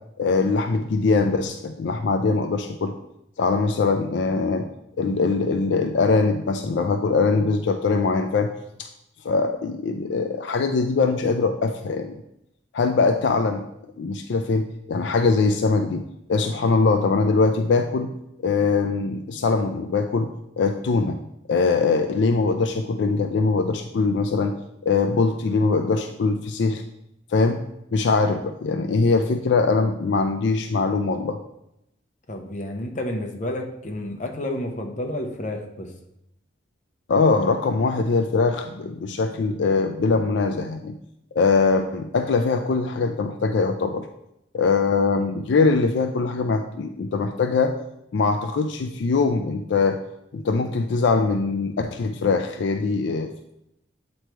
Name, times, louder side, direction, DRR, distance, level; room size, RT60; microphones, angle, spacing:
voice 1, 0.2-2.9 3.4-4.7 5.0-8.5 8.8-8.9 9.2-12.1 12.7-13.6 14.0-18.1 18.4-21.2 21.5-24.6 24.8-26.8 27.3-27.6 27.9-31.4 37.1-40.9 41.3-44.1 44.5-47.8 48.1-50.0 50.3-53.5, left 4 dB, 70° left, 6 dB, 0.4 m, -22 dB
voice 2, 32.3-35.9, left 1 dB, 40° left, 3 dB, 0.7 m, -30 dB
7.9 x 3.1 x 4.5 m, 0.83 s
head